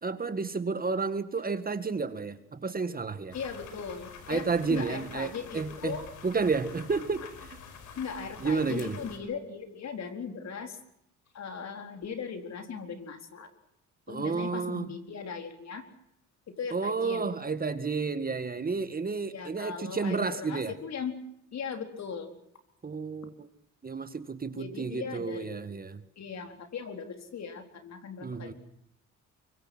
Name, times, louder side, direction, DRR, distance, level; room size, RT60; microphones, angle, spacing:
voice 1, 0.0-3.4 4.3-7.6 8.4-9.0 14.1-14.9 16.7-20.7 22.8-23.5 23.8-26.0 28.2-28.5, right 4 dB, 30° right, 10 dB, 1.9 m, -31 dB
sound 1, 3.3-9.2, left 6 dB, 80° left, 5.1 m, -47 dB
voice 2, 3.3-6.0 8.0-10.8 11.3-13.5 14.1-15.8 16.5-17.3 19.3-21.1 21.5-22.3 24.5-25.6 26.2-28.5, left 6 dB, 60° left, 6 dB, 4.3 m, -38 dB
24.0 x 23.5 x 6.3 m, 0.77 s
cardioid pair, 90°, 30 cm